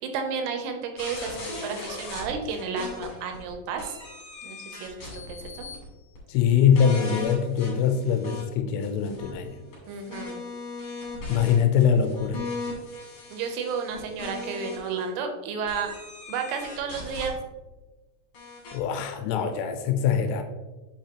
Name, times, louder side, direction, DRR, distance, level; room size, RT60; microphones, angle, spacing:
voice 1, 0.0-4.0 4.4-5.7 9.9-10.4 13.3-15.9 16.3-17.4, right 5 dB, 80° right, 5 dB, 3.1 m, -32 dB
sound 1, 1.0-3.5 3.8-5.8 6.1-6.2 6.7-8.4 8.8-15.0 15.7-17.3 18.3-18.8, left 3 dB, 45° left, 2.9 m, -38 dB
voice 2, 6.3-9.6 11.3-12.4 18.7-20.4, left 7 dB, 80° left, 7 dB, 3.0 m, -23 dB
8.3 x 5.7 x 2.9 m, 1.2 s
omnidirectional pair, 5.8 m